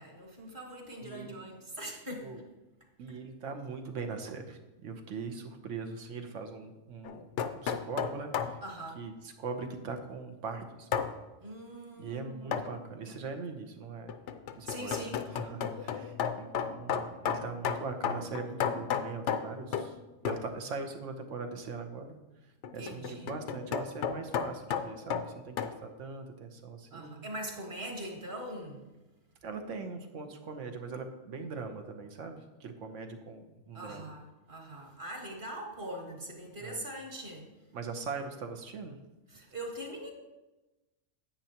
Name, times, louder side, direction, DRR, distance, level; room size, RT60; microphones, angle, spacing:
voice 1, 0.0-2.3 8.6-9.0 11.4-12.6 14.7-15.2 22.8-23.3 26.9-28.8 33.7-37.5 39.3-40.1, right 1 dB, 45° right, 1 dB, 1.8 m, -42 dB
voice 2, 1.0-1.4 2.2-2.4 3.0-7.2 7.5-8.6 9.0-10.9 12.0-14.1 14.5-20.0 20.2-22.2 22.4-27.2 29.4-34.1 36.6-36.9 37.7-39.0, right 4 dB, 75° right, 6 dB, 1.3 m, -41 dB
sound 1, 7.0-8.6 10.9-11.1 12.5-12.8 14.1-20.0 20.3-20.5 22.6-25.8, left 7 dB, 70° left, 0.9 m, -33 dB
10.0 x 8.6 x 2.9 m, 1.1 s
omnidirectional pair, 1.3 m